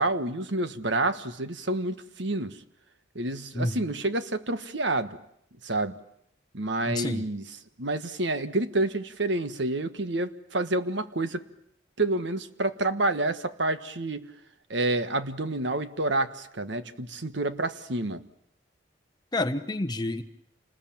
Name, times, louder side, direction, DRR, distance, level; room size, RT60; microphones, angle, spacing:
voice 1, 0.0-2.6 3.1-5.2 5.6-5.9 6.5-7.4 7.8-11.4 12.0-14.3 14.7-18.2, right 2 dB, 65° right, 11 dB, 1.4 m, -28 dB
voice 2, 6.9-7.2 19.3-20.2, left 2 dB, 20° left, 7 dB, 1.1 m, -29 dB
28.5 x 20.5 x 8.8 m, 0.73 s
head